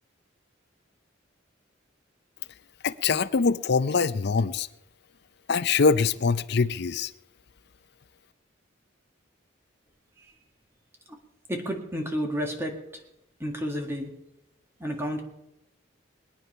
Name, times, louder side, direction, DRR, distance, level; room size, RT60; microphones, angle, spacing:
voice 1, 2.8-4.7 5.5-7.1, left 4 dB, 55° left, 0.5 m, -23 dB
voice 2, 11.5-12.8 13.4-14.1 14.8-15.2, equal, 15° right, 1.8 m, -31 dB
21.5 x 9.5 x 5.5 m
head